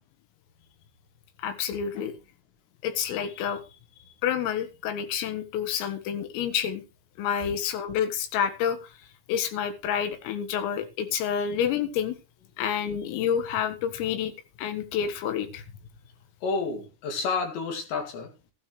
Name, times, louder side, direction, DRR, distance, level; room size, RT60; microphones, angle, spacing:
voice 1, 1.4-2.1 2.8-3.6 4.2-6.8 7.2-8.9 9.3-12.2 12.6-14.3 14.6-15.6, left 8 dB, 80° left, 9 dB, 4.2 m, -28 dB
voice 2, 16.4-18.3, left 4 dB, 60° left, 3 dB, 4.4 m, -30 dB
15.0 x 12.0 x 3.2 m, 0.29 s
omnidirectional pair, 5.9 m